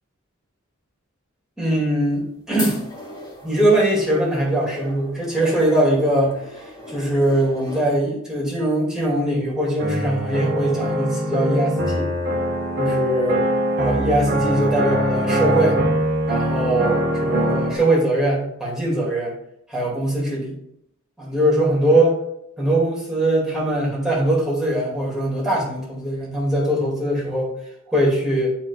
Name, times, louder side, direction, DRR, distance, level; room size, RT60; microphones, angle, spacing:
voice 1, 1.6-2.8 3.4-6.4 6.9-12.1 12.8-13.4 13.8-15.8 16.3-19.4 19.7-20.5 21.2-22.2 22.6-27.5 27.9-28.5, right 1 dB, 5° right, -5 dB, 2.3 m, -21 dB
sound 1, 2.0-7.9, left 2 dB, 20° left, 2.4 m, -38 dB
sound 2, 9.8-17.8, equal, 50° right, 1.4 m, -22 dB
11.0 x 3.8 x 2.4 m, 0.78 s
head